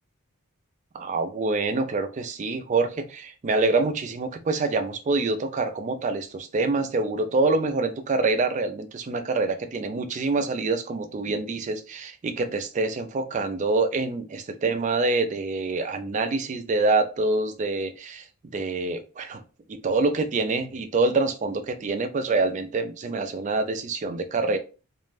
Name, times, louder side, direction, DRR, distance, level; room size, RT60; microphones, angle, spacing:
voice 1, 0.9-19.4 19.7-24.6, right 3 dB, 35° right, 8 dB, 0.3 m, -26 dB
2.4 x 2.1 x 3.2 m, 0.34 s
head